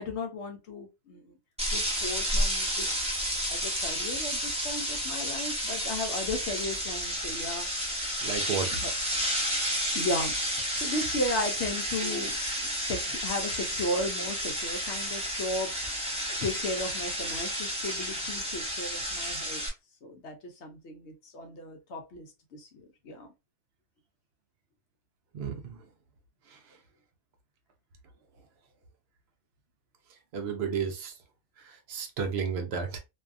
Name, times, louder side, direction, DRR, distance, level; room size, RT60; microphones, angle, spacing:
voice 1, 0.0-1.3 1.7-2.9 3.5-7.7 8.7-8.9 9.9-10.3 10.7-19.6 20.0-23.3, left 1 dB, 60° left, 0.8 m, -35 dB
sound 1, 1.6-19.7, equal, 10° right, 0.4 m, -31 dB
voice 2, 8.2-8.8 25.3-25.8 26.5-26.6 30.3-31.1 31.6-33.0, right 6 dB, 60° right, 0.7 m, -32 dB
2.6 x 2.3 x 2.4 m
omnidirectional pair, 1.5 m